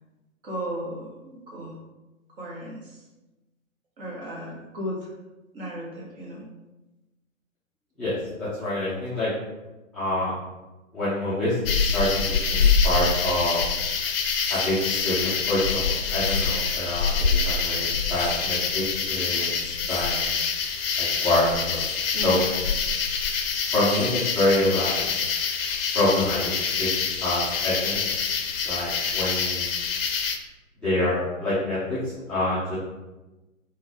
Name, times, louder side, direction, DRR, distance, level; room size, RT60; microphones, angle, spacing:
voice 1, 0.4-1.8 2.4-3.0 4.0-5.1 5.5-6.5 22.1-22.5, right 1 dB, 40° right, -3 dB, 1.5 m, -35 dB
voice 2, 8.0-9.3 9.9-10.3 10.9-12.1 12.5-13.6 14.5-20.3 21.0-21.8 22.2-22.4 23.7-25.0 25.9-26.4 26.8-26.9 27.2-28.0 28.6-29.7 30.8-32.8, left 1 dB, ahead, -16 dB, 0.4 m, -26 dB
sound 1, 11.6-30.4, left 5 dB, 45° left, 0.6 m, -26 dB
3.8 x 2.6 x 4.7 m, 1.1 s
figure-of-eight pair, 115°, 40 cm